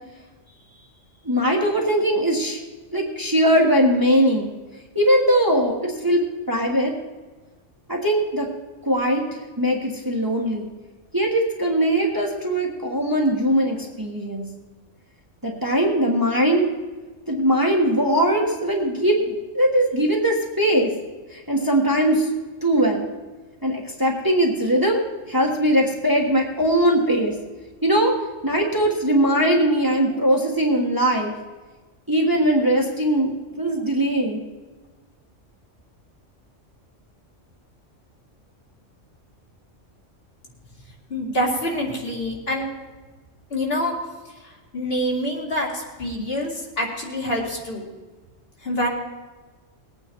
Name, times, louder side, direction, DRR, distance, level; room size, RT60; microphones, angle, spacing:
voice 1, 1.2-2.6 2.9-4.5 4.9-6.9 7.9-8.5 8.8-10.7 11.1-14.5 15.4-16.7 17.3-20.9 21.3-22.3 22.6-23.1 23.6-27.3 27.8-28.2 28.4-31.3 32.1-34.4, right 1 dB, 15° right, -1 dB, 1.5 m, -20 dB
voice 2, 41.1-42.7 43.5-43.9 44.7-47.9 48.6-48.9, equal, 50° left, -2 dB, 2.7 m, -26 dB
20.0 x 9.0 x 4.6 m, 1.3 s
omnidirectional pair, 1.3 m